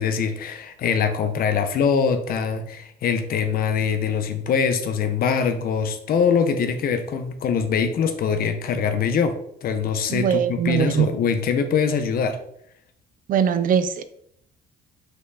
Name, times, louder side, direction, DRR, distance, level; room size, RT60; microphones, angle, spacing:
voice 1, 0.0-12.4, left 6 dB, 60° left, 8 dB, 1.2 m, -23 dB
voice 2, 10.1-11.1 13.3-14.0, right 8 dB, 55° right, 11 dB, 0.7 m, -21 dB
6.0 x 5.6 x 4.2 m, 0.70 s
cardioid pair, 110°, 17 cm